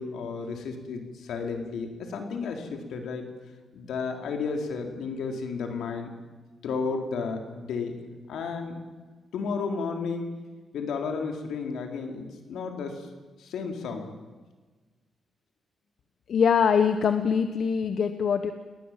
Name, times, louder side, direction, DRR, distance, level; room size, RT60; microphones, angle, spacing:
voice 1, 0.0-3.3 3.7-6.1 6.6-8.0 8.3-8.8 9.3-10.3 10.7-13.1 13.4-14.1, left 5 dB, 85° left, 3 dB, 4.2 m, -32 dB
voice 2, 16.3-18.5, left 6 dB, 65° left, 8 dB, 1.4 m, -23 dB
29.0 x 19.5 x 7.7 m, 1.3 s
cardioid pair, 95°, 0 cm